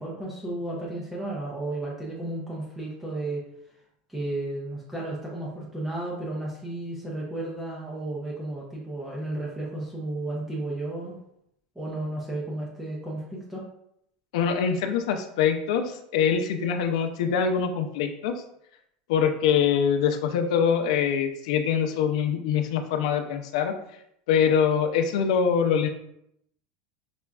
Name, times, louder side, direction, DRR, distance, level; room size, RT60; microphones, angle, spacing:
voice 1, 0.0-3.4 4.1-11.2 11.8-13.6, right 2 dB, 5° right, -5 dB, 0.5 m, -33 dB
voice 2, 14.3-18.3 19.1-23.7 24.3-25.9, left 7 dB, 80° left, 7 dB, 0.4 m, -24 dB
5.0 x 2.2 x 2.3 m, 0.76 s
supercardioid pair, 160°, 4 cm